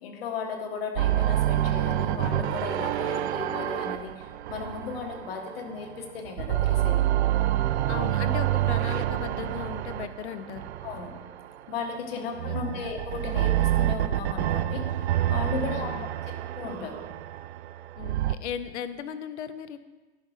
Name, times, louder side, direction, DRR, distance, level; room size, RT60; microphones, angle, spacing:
voice 1, 0.0-7.0 10.8-11.2 11.7-14.9 15.3-15.9 16.5-17.1, left 5 dB, 55° left, 4 dB, 1.3 m, -35 dB
sound 1, 1.0-5.9 6.3-11.6 12.3-18.4, right 13 dB, 70° right, 0.5 m, -27 dB
Drum, 2.2-4.9, right 4 dB, 20° right, 0.8 m, -42 dB
voice 2, 7.9-10.6 12.1-12.9 15.6-16.1 18.0-19.8, left 9 dB, 75° left, 12 dB, 0.7 m, -37 dB
10.5 x 4.0 x 4.8 m, 1.2 s
hypercardioid pair, 150°, 34 cm